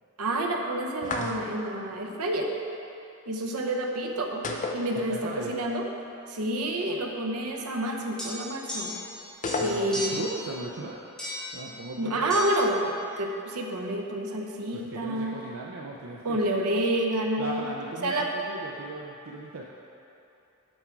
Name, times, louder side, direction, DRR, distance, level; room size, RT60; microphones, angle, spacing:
voice 1, 0.2-2.5 3.3-4.4 4.7-5.8 6.3-9.0 9.6-10.3 12.0-15.4 16.2-17.7 18.0-18.3, right 1 dB, 85° right, 1 dB, 0.8 m, -29 dB
sound 1, 1.0-1.7 4.4-5.5 5.8-5.9 9.4-10.2, left 3 dB, 35° left, 0.5 m, -32 dB
voice 2, 5.1-5.5 9.6-11.0 11.5-12.4 14.7-16.4 17.4-19.6, right 2 dB, 65° right, -2 dB, 0.5 m, -37 dB
sound 2, 8.2-9.2 9.4-10.3 11.2-11.6 12.3-12.5, left 1 dB, 5° left, 1.8 m, -35 dB
7.6 x 5.9 x 4.5 m, 2.8 s
head